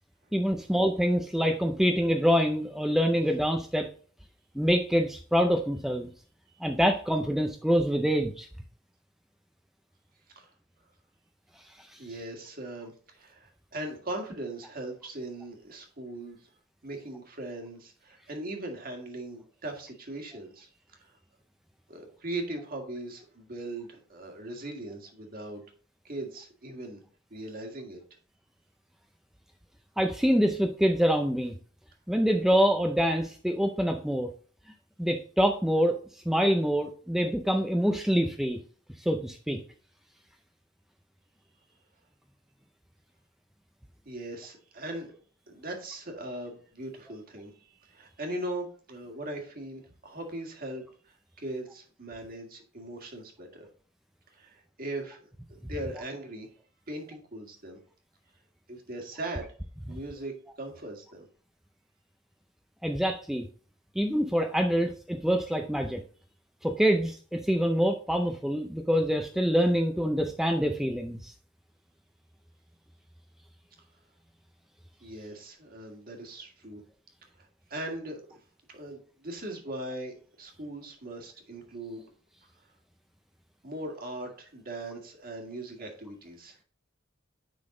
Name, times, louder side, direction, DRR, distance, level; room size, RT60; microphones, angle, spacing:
voice 1, 0.3-3.9 4.6-6.1 6.6-8.5 11.8-12.0 30.0-31.6 32.1-34.3 35.0-38.6 39.0-39.6 62.8-63.5 64.0-66.0 66.6-71.3, equal, ahead, 4 dB, 0.4 m, -26 dB
voice 2, 12.0-16.4 16.8-21.2 21.9-25.6 26.0-27.0 27.3-28.0 44.0-45.1 45.5-47.5 47.8-53.7 54.3-55.2 55.5-56.5 56.9-57.8 58.7-59.5 59.9-61.3 75.0-76.8 77.4-78.4 78.7-82.0 83.6-86.6, right 1 dB, 45° right, 2 dB, 1.7 m, -39 dB
9.8 x 3.9 x 3.7 m, 0.43 s
head